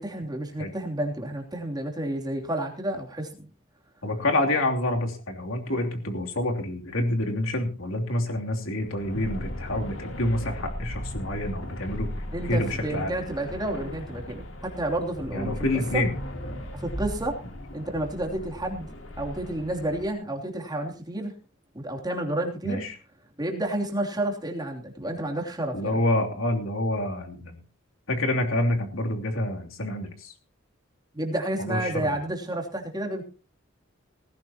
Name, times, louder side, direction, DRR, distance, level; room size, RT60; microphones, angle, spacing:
voice 1, 0.0-3.5 12.3-15.6 15.9-16.0 16.7-17.4 17.7-18.9 19.2-21.3 21.7-22.8 23.4-26.0 31.1-33.2, right 1 dB, 20° right, 1 dB, 2.9 m, -30 dB
voice 2, 4.0-12.1 12.4-13.2 15.3-16.1 22.6-22.9 25.7-27.6 28.1-30.3 31.6-32.2, left 1 dB, 85° left, 2 dB, 3.0 m, -27 dB
sound 1, 8.8-20.1, equal, 65° left, 3.1 m, -37 dB
18.0 x 15.5 x 2.9 m, 0.36 s
head